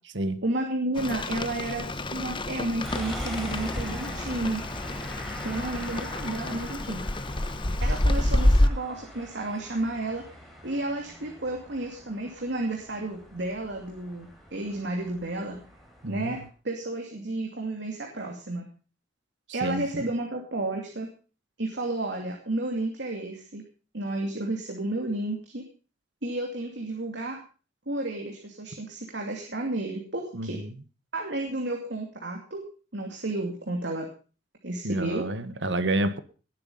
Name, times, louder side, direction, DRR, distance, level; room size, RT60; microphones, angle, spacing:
voice 1, 0.4-4.6 5.4-7.1 7.8-10.2 10.6-15.6 16.1-18.7 19.5-21.1 21.6-23.6 23.9-25.6 26.2-27.4 27.9-30.6 31.1-32.6 32.9-34.1 34.6-35.3, right 2 dB, 70° right, 1 dB, 2.7 m, -32 dB
Rain, 1.0-8.7, left 1 dB, 30° left, 0.9 m, -27 dB
sound 1, 2.8-16.5, equal, ahead, 4.0 m, -42 dB
voice 2, 16.0-16.4 19.5-20.1 30.3-30.7 34.8-36.2, right 1 dB, 85° right, 12 dB, 1.4 m, -29 dB
18.5 x 9.2 x 5.5 m, 0.38 s
head